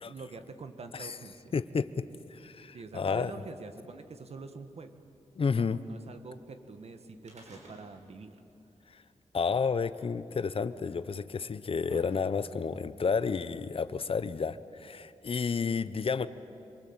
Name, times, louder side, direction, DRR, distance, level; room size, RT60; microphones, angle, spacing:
voice 1, 0.1-1.5 2.7-4.9 5.5-8.4, right 4 dB, 60° right, 8 dB, 1.9 m, -45 dB
voice 2, 1.5-2.0 2.3-3.3 5.4-5.8 9.3-16.3, left 5 dB, 50° left, 13 dB, 0.9 m, -31 dB
sound 1, 7.2-8.2 8.5-8.6 9.6-9.7 10.6-10.7 11.3-12.7 13.5-13.6, equal, 75° right, 6.1 m, -52 dB
27.0 x 23.0 x 8.9 m, 2.8 s
wide cardioid pair, 110°, 12 cm